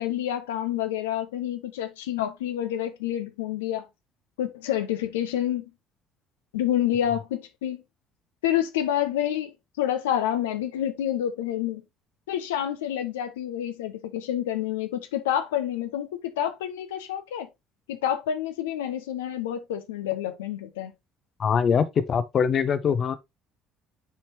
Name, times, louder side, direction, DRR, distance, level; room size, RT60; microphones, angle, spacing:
voice 1, 0.0-3.8 4.4-5.6 6.5-7.8 8.4-9.5 9.8-11.8 12.3-17.5 17.9-20.9, left 11 dB, 70° left, 0.8 m, -28 dB
voice 2, 21.4-23.2, left 7 dB, 40° left, 0.7 m, -23 dB
9.1 x 4.3 x 2.9 m
figure-of-eight pair, 55°, 0 cm